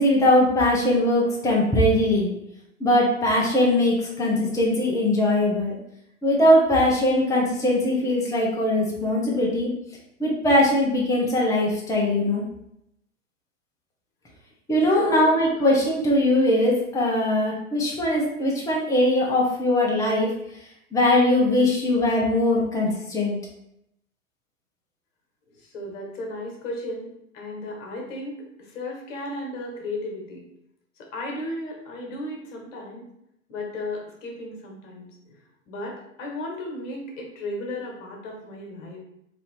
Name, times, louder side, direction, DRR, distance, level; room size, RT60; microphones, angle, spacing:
voice 1, 0.0-2.3 2.8-5.8 6.2-9.7 10.2-12.4 14.7-20.3 20.9-23.4, left 1 dB, 10° left, -4 dB, 0.9 m, -21 dB
voice 2, 15.0-15.3 25.5-27.1 27.3-30.4 31.0-33.1 33.5-35.4 35.7-39.0, left 1 dB, 65° left, 0 dB, 1.4 m, -34 dB
3.2 x 2.8 x 4.2 m, 0.80 s
hypercardioid pair, 95°, 40 cm